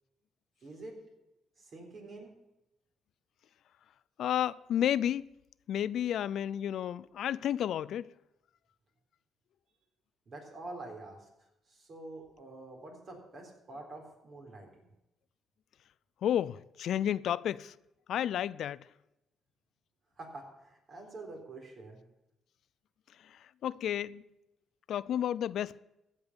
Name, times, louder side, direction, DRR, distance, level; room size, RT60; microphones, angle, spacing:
voice 1, 0.6-1.0 1.6-2.3 10.3-11.3 11.7-14.7 20.2-22.0, right 2 dB, 50° right, 3.9 m, -46 dB
voice 2, 4.2-5.3 5.7-8.1 16.2-17.7 18.1-18.8 23.3-24.2 24.9-25.8, left 10 dB, 70° left, 0.4 m, -31 dB
15.0 x 5.4 x 9.6 m
cardioid pair, 90°, 0 cm